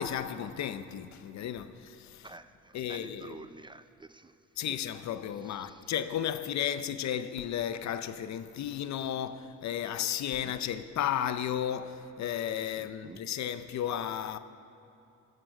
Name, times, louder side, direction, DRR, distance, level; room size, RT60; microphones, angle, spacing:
voice 1, 0.0-2.3 2.7-3.4 4.6-14.4, left 10 dB, 65° left, 0.7 m, -34 dB
voice 2, 2.2-4.3 4.7-4.8 5.4-5.9 10.3-10.6 12.8-13.2, right 3 dB, 15° right, 0.4 m, -49 dB
13.0 x 11.0 x 6.0 m
cardioid pair, 90°, 30 cm